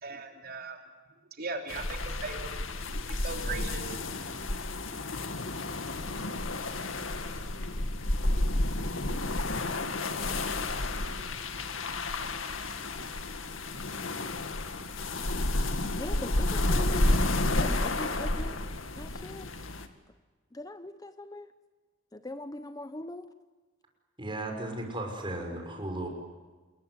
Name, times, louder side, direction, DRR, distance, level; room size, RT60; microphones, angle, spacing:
voice 1, 0.0-0.8 1.4-2.5 3.1-4.0, right 4 dB, 50° right, 4 dB, 3.3 m, -38 dB
sound 1, 1.7-19.9, left 2 dB, 90° left, 2.2 m, -31 dB
voice 2, 15.5-18.6 19.0-19.5 20.5-21.5 22.1-23.3, left 1 dB, 20° left, 11 dB, 0.9 m, -41 dB
voice 3, 24.2-26.1, right 1 dB, 25° right, 3 dB, 6.1 m, -35 dB
28.5 x 22.0 x 9.5 m, 1.4 s
head